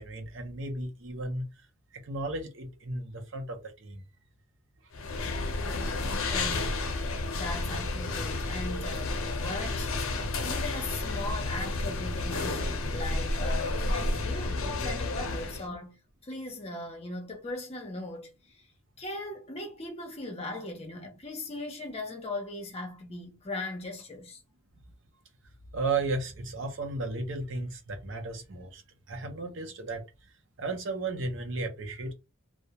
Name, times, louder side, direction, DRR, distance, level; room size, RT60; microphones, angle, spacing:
voice 1, 0.0-1.7 1.9-4.0 25.7-28.8 29.1-30.0 30.6-32.1, right 3 dB, 60° right, 0.6 m, -34 dB
sound 1, 4.9-15.7, left 2 dB, 75° left, 0.5 m, -31 dB
voice 2, 6.3-6.7 7.4-16.0 16.2-18.3 19.0-24.4, left 2 dB, 30° left, 0.7 m, -38 dB
2.3 x 2.0 x 2.8 m
head